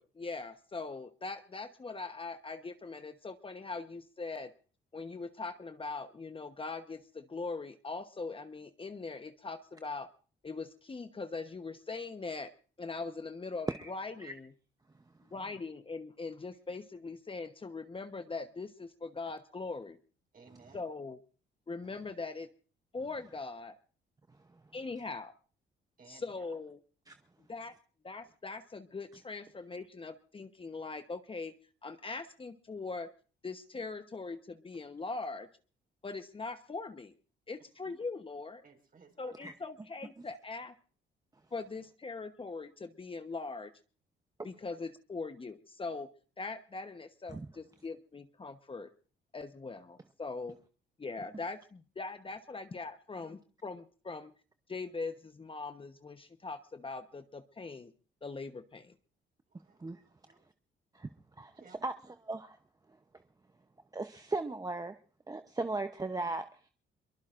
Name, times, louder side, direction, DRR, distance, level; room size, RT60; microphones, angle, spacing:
voice 1, 0.0-4.5 4.9-10.1 10.4-12.5 12.8-14.5 15.3-20.0 20.7-21.2 21.7-22.5 22.9-23.7 24.7-25.3 26.1-26.8 27.5-27.7 28.0-31.5 31.8-33.1 33.4-35.5 36.0-37.1 37.5-38.6 39.2-40.7 41.5-43.7 44.4-46.1 46.4-48.9 49.3-50.6 51.0-54.3 54.7-57.9 58.2-58.9, left 3 dB, 25° left, 1.0 m, -41 dB
voice 2, 15.3-15.7 20.3-20.8 26.0-26.5 37.8-38.0 38.6-39.3 59.5-60.4 61.6-61.9, right 4 dB, 45° right, 5.1 m, -59 dB
voice 3, 62.3-62.6 63.9-65.0 65.3-66.7, right 3 dB, 20° right, 0.8 m, -36 dB
24.5 x 23.0 x 2.6 m
cardioid pair, 90°, 20 cm